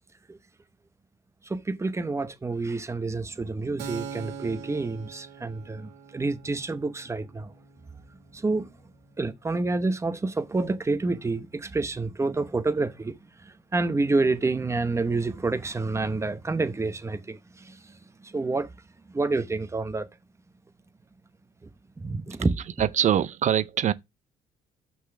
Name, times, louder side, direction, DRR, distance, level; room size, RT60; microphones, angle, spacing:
voice 1, 1.4-7.5 8.3-8.7 9.2-18.7 19.1-20.1 21.6-21.7 22.0-22.5, right 3 dB, 15° right, 0.8 m, -28 dB
Keyboard (musical), 3.8-11.1, right 6 dB, 90° right, 1.6 m, -45 dB
voice 2, 22.8-23.9, right 10 dB, 45° right, 0.5 m, -23 dB
6.0 x 4.0 x 5.8 m
cardioid pair, 110°, 17 cm